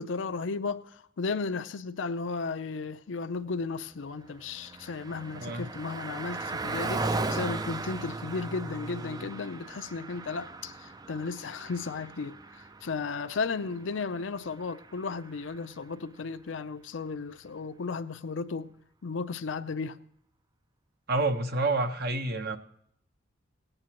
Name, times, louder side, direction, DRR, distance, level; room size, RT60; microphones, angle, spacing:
voice 1, 0.0-12.4 12.8-18.7 19.0-20.0, left 4 dB, 70° left, 0.5 m, -34 dB
Car passing by, 4.0-15.7, right 3 dB, 20° right, 0.4 m, -37 dB
voice 2, 21.1-22.6, right 2 dB, 55° right, 0.8 m, -28 dB
18.5 x 8.8 x 2.9 m
head